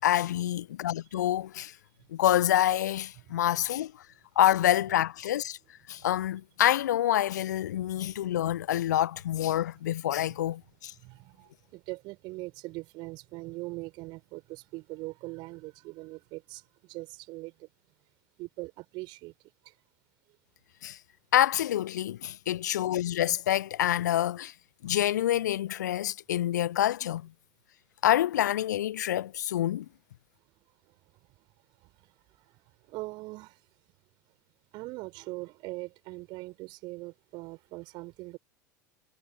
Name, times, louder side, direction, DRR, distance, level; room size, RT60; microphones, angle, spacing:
voice 1, 0.0-1.8 2.1-4.1 4.4-5.6 5.9-10.9 20.8-21.0 21.3-24.5 24.8-27.3 28.0-29.9, left 12 dB, 70° left, 0.4 m, -27 dB
voice 2, 11.0-17.7 18.4-19.3 19.6-19.7 30.9-31.4 31.8-33.6 34.7-38.4, right 22 dB, 50° right, 5.0 m, -42 dB
figure-of-eight pair, 75°, 10 cm